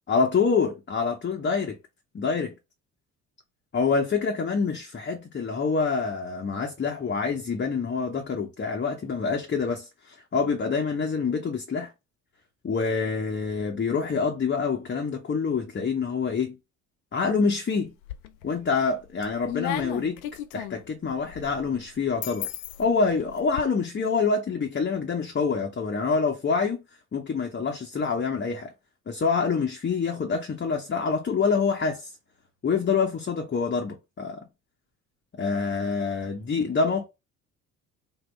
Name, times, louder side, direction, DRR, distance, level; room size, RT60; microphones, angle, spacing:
voice 1, 0.1-1.8 2.1-2.5 3.7-11.9 12.6-16.6 17.1-17.9 18.4-20.2 20.5-22.5 22.8-26.8 27.1-28.7 29.1-32.1 32.6-34.5 35.4-37.1, left 5 dB, 25° left, 0.7 m, -26 dB
sound 1, 17.8-18.6 19.0-23.6, left 11 dB, 85° left, 0.5 m, -36 dB
3.7 x 2.2 x 3.3 m
hypercardioid pair, 50°, 43 cm